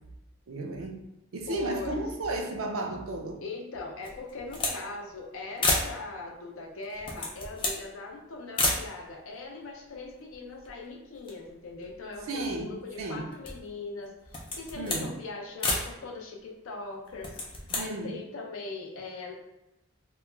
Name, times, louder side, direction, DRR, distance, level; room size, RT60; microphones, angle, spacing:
voice 1, 0.5-1.0 1.3-3.4 12.3-12.7 13.0-13.3 14.7-15.1 17.7-18.2, right 2 dB, 80° right, 0.4 m, -33 dB
voice 2, 1.5-2.0 3.4-19.3, left 3 dB, 80° left, 0.5 m, -40 dB
sound 1, 4.0-4.8 5.1-5.2 5.6-5.9 6.8-7.8 8.5-8.8 9.6-9.7 9.9-10.8 11.1-12.4 12.9-13.7 14.2-15.1 15.6-15.9 17.1-17.8, left 2 dB, 25° left, 0.4 m, -31 dB
2.2 x 2.1 x 3.1 m
head